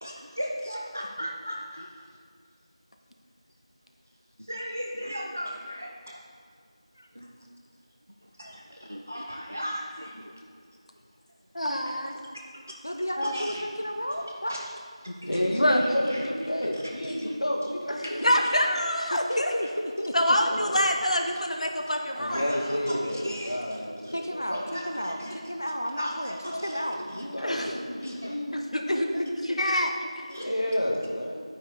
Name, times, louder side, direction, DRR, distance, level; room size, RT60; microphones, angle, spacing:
voice 1, 0.0-2.1 4.4-6.2 7.1-7.5 8.2-10.4 11.9-12.0 12.3-12.8 13.2-13.7 14.5-14.7 15.0-16.3 16.7-17.7 18.0-18.6 21.8-21.9 22.3-24.1 24.5-25.4 25.9-27.3 27.6-28.3 29.5-29.8 30.3-30.5, equal, 25° right, 0 dB, 0.5 m, -37 dB
voice 2, 11.5-12.2 13.2-13.3 15.1-15.2 15.6-15.8 18.2-19.5 20.1-22.4 27.4-27.7 28.5-29.9 30.2-30.4, equal, 85° left, 3 dB, 1.1 m, -26 dB
voice 3, 12.8-14.5 19.1-20.1 24.1-26.4 26.6-27.0, equal, 30° left, 4 dB, 0.5 m, -32 dB
voice 4, 15.2-18.3 20.5-20.8 22.1-24.4 27.0-28.6 30.3-31.4, equal, 65° left, -2 dB, 1.8 m, -30 dB
10.5 x 9.0 x 3.6 m, 2.2 s
figure-of-eight pair, 180°, 3 cm